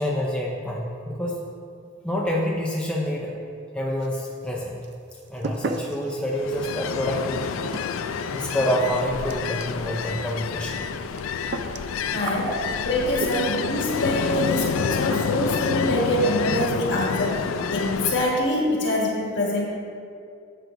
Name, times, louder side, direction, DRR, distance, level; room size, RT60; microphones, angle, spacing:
voice 1, 0.0-1.4 2.0-3.4 3.7-4.8 5.3-7.6 8.3-10.8, equal, 5° left, -3 dB, 0.6 m, -27 dB
sound 1, 4.0-4.6 4.8-13.7 14.7-14.9 15.1-15.6 15.9-16.0 16.3-16.4 16.7-16.9 17.2-17.7, right 3 dB, 55° right, 0.4 m, -37 dB
Ocean, 6.3-18.5, left 6 dB, 85° left, 0.4 m, -28 dB
voice 2, 12.1-12.5 12.9-19.6, left 1 dB, 60° left, -3 dB, 1.7 m, -25 dB
10.5 x 7.9 x 2.6 m, 2.4 s
head